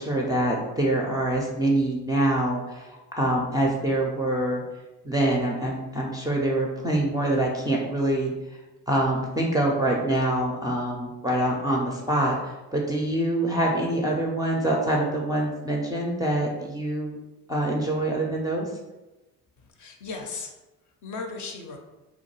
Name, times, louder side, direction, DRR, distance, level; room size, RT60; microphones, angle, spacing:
voice 1, 0.0-4.6 5.0-8.3 8.9-17.1 17.5-18.7, right 1 dB, 10° right, -3 dB, 0.4 m, -25 dB
voice 2, 19.6-20.5 21.0-21.8, left 4 dB, 45° left, 3 dB, 0.5 m, -36 dB
2.3 x 2.1 x 3.0 m, 1.1 s
hypercardioid pair, 55°, 43 cm